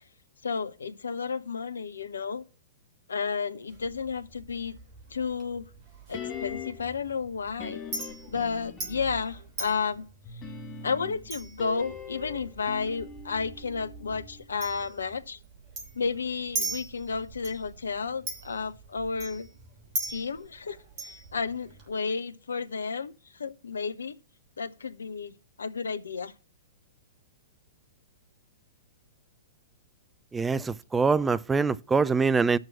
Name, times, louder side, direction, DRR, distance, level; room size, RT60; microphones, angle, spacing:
voice 1, 0.4-2.4 3.1-4.8 5.1-5.7 6.1-7.8 8.3-10.1 10.8-15.4 15.9-19.5 20.1-24.1 24.6-26.3, left 5 dB, 70° left, 0.6 m, -32 dB
Chink clink, 3.7-21.9, right 2 dB, 35° right, 3.1 m, -41 dB
sound 1, 6.1-7.0 7.6-9.2 10.2-14.5 14.7-14.8, left 7 dB, 20° left, 1.4 m, -41 dB
voice 2, 30.3-32.6, right 4 dB, 10° right, 0.3 m, -24 dB
6.5 x 6.0 x 7.1 m
figure-of-eight pair, 105°, 0 cm